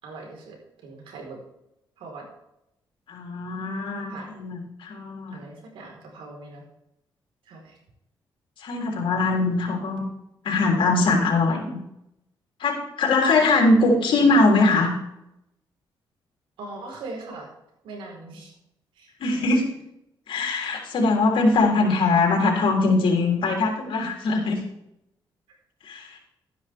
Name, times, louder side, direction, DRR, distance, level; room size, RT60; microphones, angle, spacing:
voice 1, 0.0-1.4 2.0-2.3 4.1-4.3 5.3-6.6 7.4-7.8 16.6-17.5 17.8-18.5 18.9-19.5 25.5-25.6, right 3 dB, 85° right, 0 dB, 4.7 m, -40 dB
voice 2, 3.1-5.4 8.6-10.0 10.4-11.8 12.6-14.9 19.2-19.7 20.3-24.6 25.8-26.2, left 3 dB, 75° left, 0 dB, 3.7 m, -21 dB
13.0 x 10.5 x 3.7 m, 0.83 s
cardioid pair, 80°, 9 cm